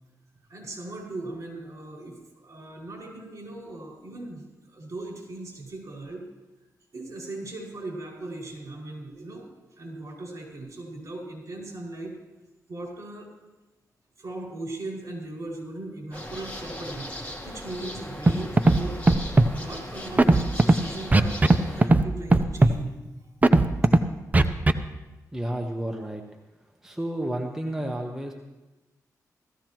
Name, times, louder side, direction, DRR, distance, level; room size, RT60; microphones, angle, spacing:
voice 1, 0.5-6.3 6.9-9.5 9.8-12.2 12.7-13.3 14.2-17.1 17.4-19.0 19.5-23.0, right 2 dB, 50° right, -2 dB, 5.6 m, -38 dB
sound 1, 16.1-21.9, left 1 dB, 25° left, 2.7 m, -38 dB
Scratching (performance technique), 18.3-18.4 18.6-18.8 19.1-19.5 20.2-20.7 21.1-21.6 21.8-22.0 22.3-22.7 23.4-24.0 24.3-24.7, right 2 dB, 25° right, 0.6 m, -16 dB
voice 2, 25.3-26.2 26.8-28.3, right 1 dB, 5° right, 2 dB, 1.1 m, -31 dB
17.5 x 14.5 x 3.0 m, 1.1 s
cardioid pair, 80°, 7 cm